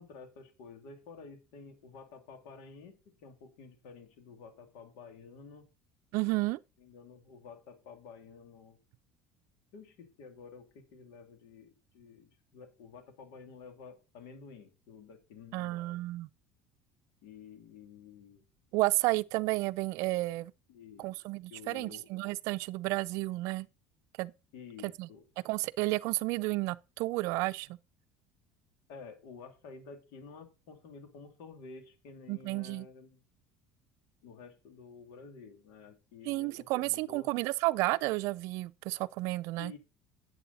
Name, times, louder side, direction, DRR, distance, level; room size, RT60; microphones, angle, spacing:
voice 1, 0.0-5.7 6.8-8.8 9.7-16.0 17.2-18.4 20.7-21.1 21.5-22.1 24.5-25.2 28.9-33.2 34.2-37.3 39.6-39.8, left 5 dB, 80° left, 2.8 m, -51 dB
voice 2, 6.1-6.6 15.5-16.3 18.7-20.5 21.0-23.7 24.2-24.3 24.8-25.1 25.4-27.8 32.3-32.9 36.3-39.7, right 21 dB, 70° right, 0.4 m, -32 dB
11.0 x 8.4 x 4.1 m
cardioid pair, 125°, 5 cm